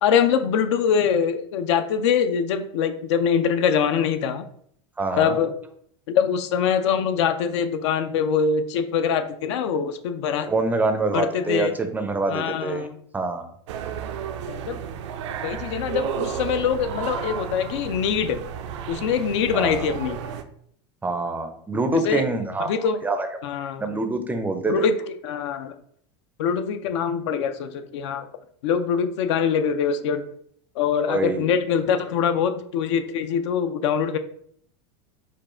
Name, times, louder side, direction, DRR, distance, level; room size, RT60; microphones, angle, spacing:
voice 1, 0.0-4.4 5.2-5.5 6.1-10.5 11.1-11.8 12.3-13.0 14.5-14.8 15.4-18.4 18.9-20.2 21.9-22.2 22.7-23.0 23.4-23.9 24.7-25.7 26.4-28.3 28.6-30.3 30.8-34.2, left 7 dB, 75° left, 9 dB, 0.5 m, -23 dB
voice 2, 5.0-5.4 10.5-12.9 13.1-13.5 19.5-19.9 21.0-23.3 23.8-24.9 31.1-31.5, right 3 dB, 10° right, 7 dB, 0.4 m, -25 dB
sound 1, 13.7-20.4, right 8 dB, 80° right, 0.5 m, -32 dB
4.5 x 2.4 x 4.2 m, 0.64 s
supercardioid pair, 130°, 15 cm